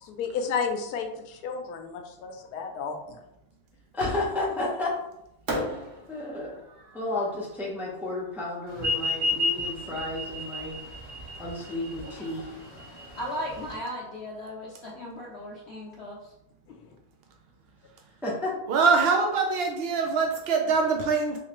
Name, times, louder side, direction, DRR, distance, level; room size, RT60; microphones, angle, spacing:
voice 1, 0.0-3.0 5.7-5.8 12.0-12.5, left 5 dB, 80° left, 5 dB, 1.1 m, -32 dB
voice 2, 3.9-5.0 6.1-6.6 6.9-10.8 11.4-12.5 18.2-18.5, left 2 dB, 5° right, -5 dB, 0.4 m, -32 dB
Fireworks, 4.0-4.7 5.5-8.6, right 1 dB, 60° right, 1.1 m, -37 dB
sound 1, 8.8-13.8, left 2 dB, 30° right, 0.9 m, -31 dB
voice 3, 13.2-16.3, equal, 60° left, -3 dB, 0.7 m, -36 dB
voice 4, 18.7-21.4, right 4 dB, 85° right, 3 dB, 0.5 m, -23 dB
3.3 x 3.1 x 3.0 m, 0.85 s
omnidirectional pair, 1.6 m